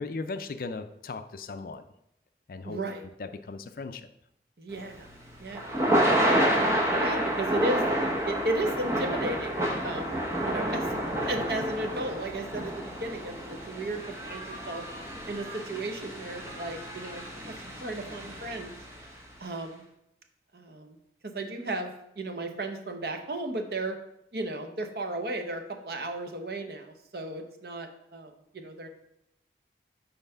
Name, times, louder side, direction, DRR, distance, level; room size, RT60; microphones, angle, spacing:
voice 1, 0.0-1.8 2.5-2.8 3.2-4.1, left 3 dB, 50° left, 10 dB, 0.4 m, -37 dB
voice 2, 2.6-3.1 4.6-5.1 5.4-5.7 6.3-10.2 10.4-10.9 11.2-14.8 15.3-18.7 19.4-19.8 20.5-21.0 21.2-21.9 22.2-24.0 24.3-28.9, right 2 dB, 60° right, 5 dB, 0.8 m, -35 dB
Thunder / Rain, 4.8-19.0, right 1 dB, 15° right, 0.9 m, -29 dB
5.7 x 4.0 x 5.5 m, 0.80 s
head